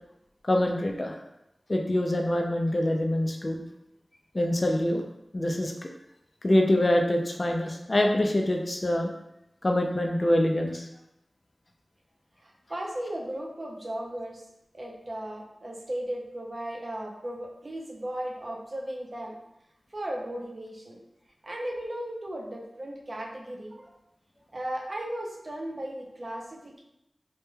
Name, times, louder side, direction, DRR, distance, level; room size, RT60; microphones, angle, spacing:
voice 1, 0.4-1.2 1.7-3.6 4.3-5.0 5.3-5.9 6.4-9.1 9.6-10.9, left 1 dB, 45° left, 3 dB, 0.4 m, -25 dB
voice 2, 12.4-14.5 14.7-19.4 19.9-21.0 21.4-24.0 24.5-26.8, right 1 dB, 55° right, -2 dB, 0.5 m, -36 dB
2.2 x 2.1 x 3.1 m, 0.83 s
wide cardioid pair, 45°, 0 cm